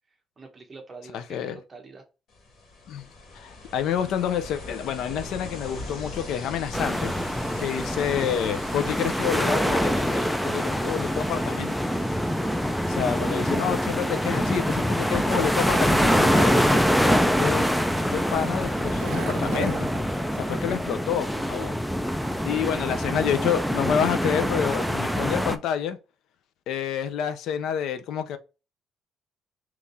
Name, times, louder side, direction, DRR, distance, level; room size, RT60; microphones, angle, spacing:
voice 1, 0.4-2.0 13.3-13.6, right 3 dB, 25° right, 1.0 m, -44 dB
voice 2, 1.1-1.6 2.9-3.1 3.3-7.1 7.6-11.8 12.9-17.7 18.1-19.9 20.3-21.8 22.4-26.0 26.7-28.4, left 9 dB, 75° left, 0.5 m, -28 dB
Ocean, 2.3-19.7, left 2 dB, 55° left, 1.4 m, -42 dB
sound 1, 6.7-25.6, equal, ahead, 0.3 m, -25 dB
Skateboard, 15.3-22.7, right 7 dB, 80° right, 0.5 m, -41 dB
3.6 x 3.0 x 4.0 m
cardioid pair, 150°, 0 cm